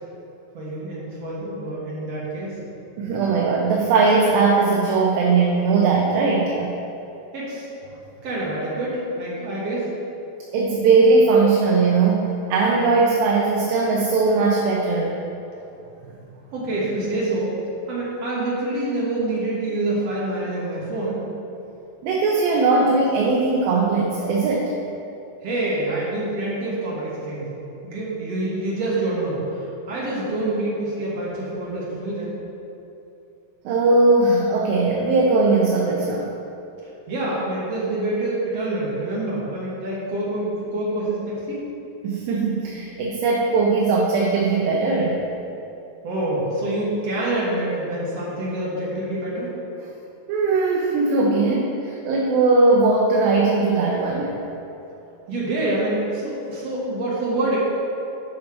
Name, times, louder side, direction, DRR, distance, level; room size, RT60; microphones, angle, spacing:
voice 1, 0.5-2.6 7.3-7.7 8.2-9.9 16.5-17.5 17.9-21.3 25.4-27.5 27.8-32.3 37.1-41.7 46.0-49.5 55.3-57.6, right 2 dB, 55° right, -6 dB, 1.9 m, -26 dB
voice 2, 3.0-6.7 10.5-15.2 16.0-16.1 22.0-24.7 33.7-36.3 42.0-45.2 50.3-54.4, right 3 dB, 80° right, -2 dB, 2.3 m, -19 dB
7.7 x 5.7 x 4.4 m, 2.9 s
omnidirectional pair, 4.3 m